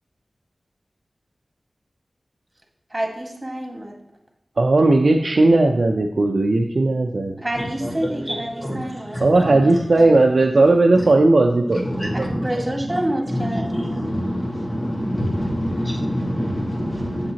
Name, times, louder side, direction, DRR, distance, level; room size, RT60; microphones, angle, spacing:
voice 1, 2.9-3.9 7.4-9.6 12.3-14.1, right 1 dB, 25° right, 1 dB, 1.7 m, -28 dB
voice 2, 4.6-7.4 9.2-12.5, right 2 dB, 70° right, 1 dB, 0.5 m, -17 dB
voice 3, 7.6-7.9 8.3-8.8 9.1-9.2 10.9-11.0 11.8-12.5 12.9-13.0 13.3-17.3, equal, 25° left, -2 dB, 1.8 m, -26 dB
7.5 x 6.6 x 2.9 m, 0.79 s
cardioid pair, 40°, 0 cm